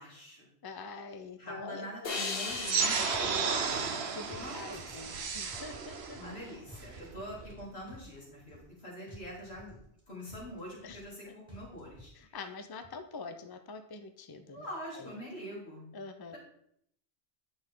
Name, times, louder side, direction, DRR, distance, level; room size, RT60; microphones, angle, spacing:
voice 1, 0.0-0.5 1.4-3.9 4.3-5.4 6.1-12.6 14.5-15.8, equal, 90° left, -4 dB, 3.2 m, -45 dB
voice 2, 0.6-2.2 4.1-6.2 10.8-11.3 12.1-14.7 14.9-15.2 15.9-16.4, left 4 dB, 30° left, 8 dB, 0.5 m, -45 dB
sound 1, 2.0-5.4, left 3 dB, 65° left, 1.3 m, -39 dB
sound 2, 2.5-2.8 3.1-4.0 4.3-5.2 5.5-6.4 6.7-7.6 7.9-8.8 9.1-10.0 10.3-11.2 11.5-12.1, equal, 30° right, 2.7 m, -53 dB
sound 3, 2.6-7.6, right 5 dB, 85° right, 1.1 m, -33 dB
8.8 x 6.1 x 3.7 m, 0.72 s
omnidirectional pair, 1.0 m